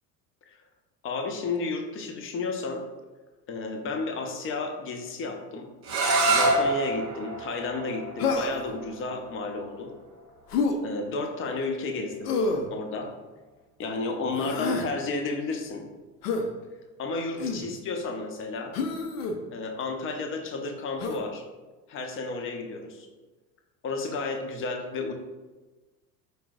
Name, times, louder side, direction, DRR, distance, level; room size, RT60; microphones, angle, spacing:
voice 1, 1.0-2.8 3.5-5.7 6.3-9.9 10.8-12.4 12.7-13.1 13.8-15.9 17.0-18.8 19.5-21.4 21.9-23.1 23.8-25.1, left 3 dB, 25° left, 3 dB, 0.5 m, -32 dB
sound 1, 5.8-11.6, right 2 dB, 35° right, 0.8 m, -28 dB
Human voice, 8.2-8.7 10.5-10.8 12.3-12.7 14.3-14.9 16.2-16.5 17.4-17.7 18.7-19.4 21.0-21.2, left 4 dB, 70° left, 0.6 m, -28 dB
4.5 x 2.0 x 3.5 m, 1.2 s
figure-of-eight pair, 70°, 49 cm